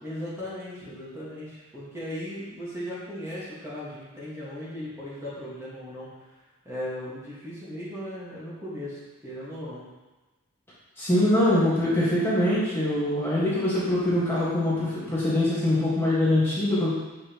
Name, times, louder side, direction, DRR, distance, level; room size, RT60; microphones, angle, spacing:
voice 1, 0.0-6.3 6.7-9.8, equal, 10° right, -10 dB, 1.7 m, -37 dB
voice 2, 11.0-16.9, left 1 dB, 10° left, -10 dB, 1.6 m, -23 dB
7.8 x 5.2 x 3.0 m, 1.2 s
head